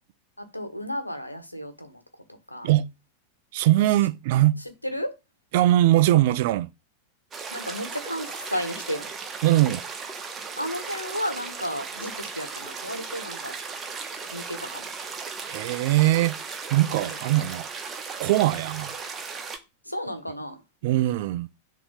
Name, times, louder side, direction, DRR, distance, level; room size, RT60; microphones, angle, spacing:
voice 1, 0.4-2.0 2.5-2.7 4.8-5.2 7.5-9.1 10.6-13.5 14.3-14.9 16.9-17.1 19.8-20.6, equal, 85° left, 1.3 m, -33 dB
voice 2, 3.5-4.6 5.5-6.7 9.4-9.8 15.4-16.4 16.7-17.7 18.2-18.9 20.8-21.5, right 15 dB, 50° right, 0.5 m, -21 dB
sound 1, 7.3-19.6, right 5 dB, 20° right, 1.1 m, -36 dB
7.0 x 3.0 x 5.2 m
figure-of-eight pair, 90°, 0 cm